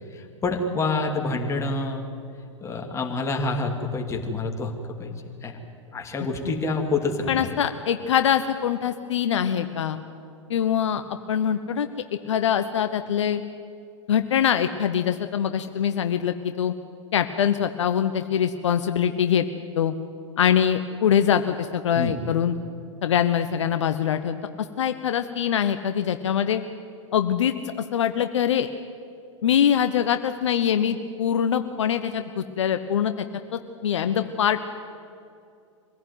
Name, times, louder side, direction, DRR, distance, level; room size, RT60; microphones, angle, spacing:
voice 1, 0.1-2.1 2.6-5.6 5.9-7.5 22.0-22.2, left 3 dB, 15° left, 2 dB, 2.8 m, -27 dB
voice 2, 7.3-10.0 10.5-11.0 11.3-11.9 12.3-13.4 14.1-16.7 17.1-19.4 19.8-19.9 20.4-22.5 23.0-24.4 24.8-26.6 27.1-27.5 27.9-28.7 29.4-33.2 33.5-34.6, left 9 dB, 65° left, 9 dB, 1.0 m, -23 dB
24.0 x 16.5 x 9.5 m, 2.5 s
figure-of-eight pair, 100°, 16 cm